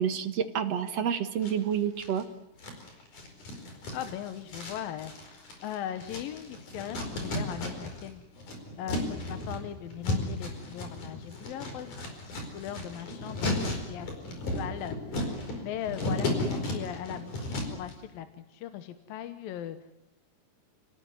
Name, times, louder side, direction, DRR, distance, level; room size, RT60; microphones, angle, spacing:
voice 1, 0.0-2.2, right 8 dB, 50° right, 8 dB, 2.3 m, -29 dB
sound 1, 1.4-2.2 2.6-8.1 8.3-17.9, left 1 dB, 55° left, 6.2 m, -34 dB
voice 2, 3.9-8.2 8.8-11.9 12.5-19.8, left 10 dB, 75° left, 10 dB, 2.8 m, -39 dB
29.5 x 18.5 x 9.6 m, 0.91 s
omnidirectional pair, 4.2 m